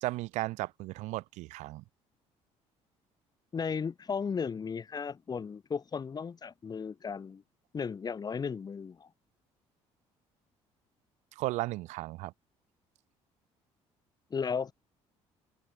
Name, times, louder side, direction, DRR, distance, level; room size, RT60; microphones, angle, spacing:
voice 1, 0.0-1.8 11.4-12.3, right 19 dB, 85° right, 1.0 m, -35 dB
voice 2, 3.5-7.4 7.7-9.1 14.3-14.7, left 6 dB, 35° left, 5.4 m, -35 dB
cardioid pair, 105°, 12 cm